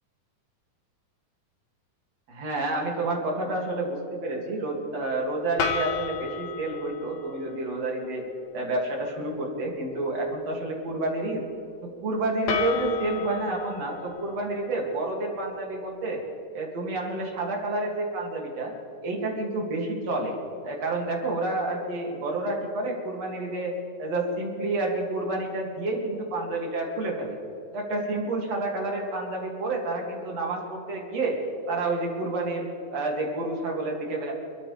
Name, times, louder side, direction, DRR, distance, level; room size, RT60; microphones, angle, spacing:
voice 1, 2.3-8.2 8.5-11.5 11.8-16.2 16.5-18.7 19.0-20.4 20.6-27.4 27.7-31.4 31.7-34.3, right 2 dB, 55° right, 0 dB, 3.7 m, -29 dB
sound 1, 5.6-7.6 12.5-15.6, left 6 dB, 80° left, 3.1 m, -33 dB
28.0 x 13.5 x 3.5 m, 2.8 s
omnidirectional pair, 3.5 m